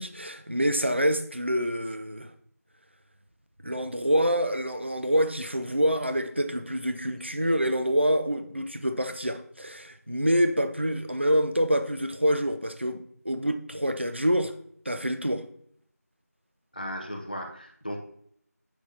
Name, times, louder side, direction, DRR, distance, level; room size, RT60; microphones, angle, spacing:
voice 1, 0.0-2.3 3.6-14.5 14.9-15.4, equal, 45° right, 0.6 m, -26 dB
voice 2, 16.7-18.0, equal, 30° left, 0.9 m, -36 dB
10.0 x 6.2 x 2.9 m
figure-of-eight pair, 180°, 9 cm